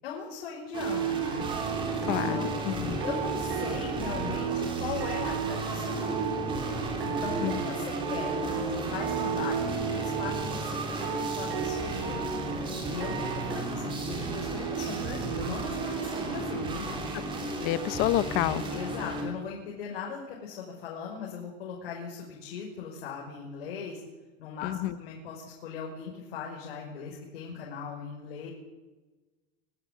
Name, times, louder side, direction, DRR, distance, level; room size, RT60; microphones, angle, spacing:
voice 1, 0.0-1.5 2.0-2.6 3.0-6.3 7.0-12.3 12.9-17.1 18.7-24.0 24.4-28.5, left 6 dB, 90° left, -1 dB, 5.9 m, -39 dB
sound 1, 0.7-19.2, right 4 dB, 15° right, 3.5 m, -33 dB
sound 2, 1.4-13.6, right 6 dB, 80° right, 5.0 m, -36 dB
voice 2, 2.1-3.1 7.4-7.6 17.6-18.6 24.6-25.0, left 14 dB, 30° left, 15 dB, 0.9 m, -29 dB
25.0 x 13.0 x 9.5 m, 1.2 s
supercardioid pair, 180°, 30 cm